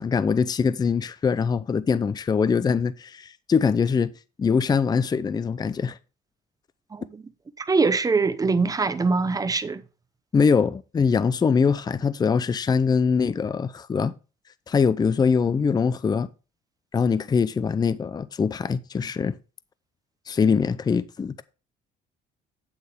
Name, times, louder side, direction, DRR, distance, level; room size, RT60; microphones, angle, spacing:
voice 1, 0.0-4.1 4.4-6.0 10.3-14.1 14.7-16.3 16.9-19.3 20.3-21.4, left 5 dB, 25° left, 0.5 m, -23 dB
voice 2, 7.6-9.8, right 4 dB, 20° right, 0.8 m, -23 dB
8.8 x 8.1 x 3.4 m
cardioid pair, 110°, 17 cm